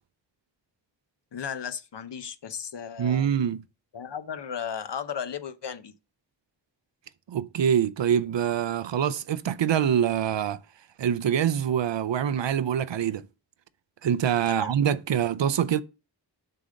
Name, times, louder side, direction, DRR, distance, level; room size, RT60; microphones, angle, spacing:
voice 1, 1.3-3.3 3.9-5.9 14.5-14.7, left 7 dB, 70° left, 0.7 m, -35 dB
voice 2, 3.0-3.6 7.3-10.6 11.0-13.3 14.0-15.8, right 9 dB, 80° right, 0.6 m, -25 dB
6.7 x 3.9 x 6.2 m
wide cardioid pair, 85°, 43 cm